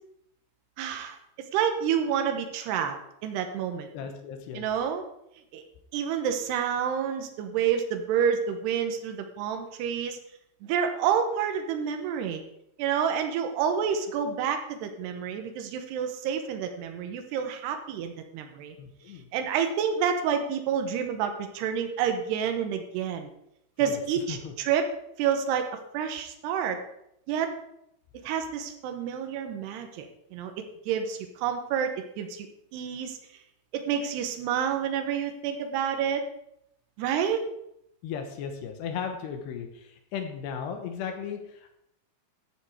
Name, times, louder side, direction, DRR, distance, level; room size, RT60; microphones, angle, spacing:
voice 1, 0.8-3.0 3.2-3.9 4.5-5.0 5.5-5.6 5.9-10.2 10.6-12.4 12.8-18.8 19.3-23.3 23.8-24.9 25.2-25.7 25.9-26.8 27.3-27.5 28.2-30.5 30.9-32.5 32.7-33.2 33.7-36.2 37.0-37.4, right 8 dB, 75° right, 6 dB, 2.6 m, -28 dB
voice 2, 3.9-4.7 18.8-19.3 23.9-24.0 24.3-24.5 38.0-41.8, left 7 dB, 75° left, 5 dB, 2.7 m, -36 dB
14.5 x 7.2 x 4.8 m, 0.78 s
omnidirectional pair, 5.9 m